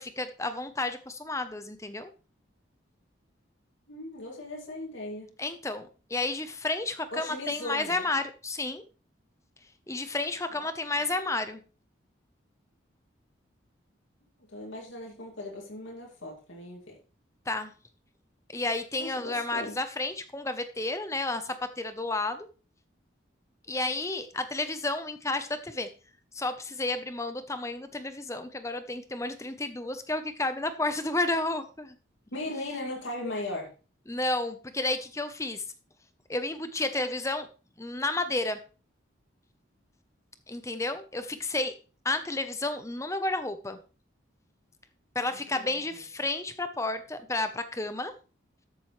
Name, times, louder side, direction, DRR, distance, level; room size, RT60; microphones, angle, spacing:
voice 1, 0.0-2.1 5.4-8.8 9.9-11.6 17.5-17.7 18.5-22.5 23.7-25.9 26.3-31.9 34.1-35.6 36.3-37.5 37.8-38.6 40.5-41.7 42.0-43.8 45.1-48.1, left 2 dB, 15° left, 10 dB, 0.8 m, -31 dB
voice 2, 3.9-5.3 7.1-8.0 10.6-10.9 14.5-17.0 18.9-19.8 32.3-33.7 45.3-45.8, left 2 dB, 80° left, -1 dB, 2.6 m, -38 dB
13.5 x 7.5 x 3.2 m, 0.35 s
head